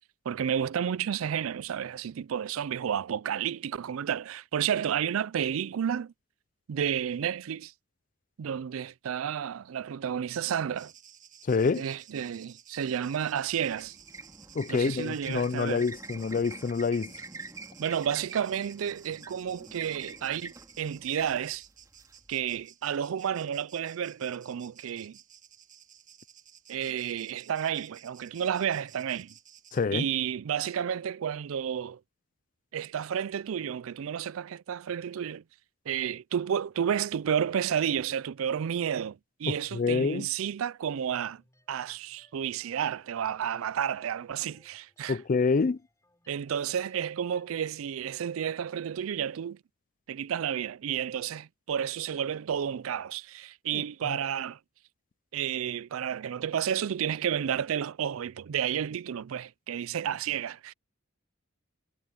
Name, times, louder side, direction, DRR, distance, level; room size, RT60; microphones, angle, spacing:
voice 1, 0.3-6.1 6.7-7.7 8.4-10.9 11.8-14.0 14.7-15.9 17.8-21.7 22.3-25.2 26.7-29.3 29.9-32.0 32.7-35.4 35.9-41.4 41.7-45.2 46.3-49.6 50.1-54.6 55.3-60.7, right 8 dB, 80° right, 0.4 m, -31 dB
sound 1, 10.7-29.9, right 9 dB, 40° right, 1.5 m, -55 dB
voice 2, 11.5-11.8 14.5-17.1 29.7-30.0 39.5-40.3 45.1-45.8 53.7-53.8 54.1-54.2, left 4 dB, 40° left, 0.4 m, -27 dB
sound 2, 13.3-22.6, right 3 dB, 15° right, 2.7 m, -46 dB
sound 3, 40.9-47.7, left 1 dB, 15° left, 5.4 m, -64 dB
head